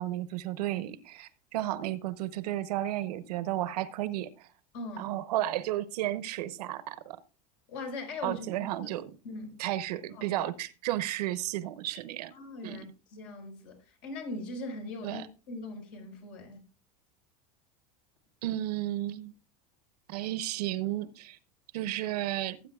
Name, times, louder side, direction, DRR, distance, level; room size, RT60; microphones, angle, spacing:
voice 1, 0.0-4.5 5.0-7.2 8.2-9.1 9.6-12.3 12.6-12.8 15.0-15.3 18.4-19.3 20.1-21.4 21.7-22.6, right 14 dB, 85° right, 0.9 m, -33 dB
voice 2, 4.7-5.2 7.7-8.5 9.2-9.6 10.2-10.3 12.3-16.6, left 2 dB, 70° left, 5.0 m, -40 dB
18.0 x 8.6 x 2.4 m
supercardioid pair, 125°, 20 cm